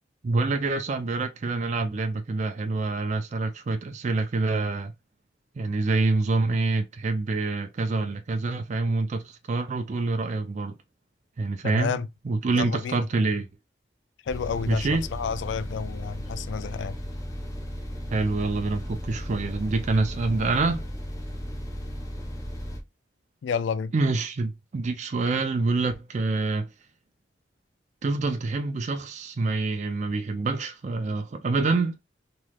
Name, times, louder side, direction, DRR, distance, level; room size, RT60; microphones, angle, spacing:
voice 1, 0.2-4.9 5.6-10.7 11.4-12.0 12.2-13.5 14.7-15.0 18.1-20.8 23.9-26.7 28.0-32.0, right 3 dB, 40° right, 0.4 m, -26 dB
voice 2, 11.6-12.1 12.6-13.0 14.2-17.0 23.4-23.9, left 6 dB, 75° left, 0.3 m, -30 dB
sound 1, 14.3-22.8, equal, 20° left, 0.7 m, -35 dB
3.2 x 3.0 x 2.3 m
head